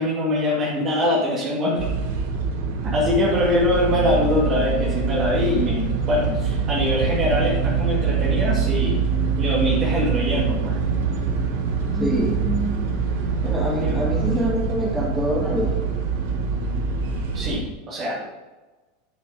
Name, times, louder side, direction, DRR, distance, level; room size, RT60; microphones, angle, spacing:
voice 1, 0.0-1.8 2.8-9.0 9.4-10.8 13.8-14.1 17.3-18.3, left 1 dB, 30° right, -5 dB, 2.3 m, -23 dB
sound 1, 1.8-17.6, right 5 dB, 60° right, 1.7 m, -24 dB
voice 2, 11.9-12.8 13.4-15.9, right 1 dB, 5° right, -4 dB, 3.4 m, -25 dB
10.0 x 5.9 x 5.1 m, 1.2 s
figure-of-eight pair, 85°, 0 cm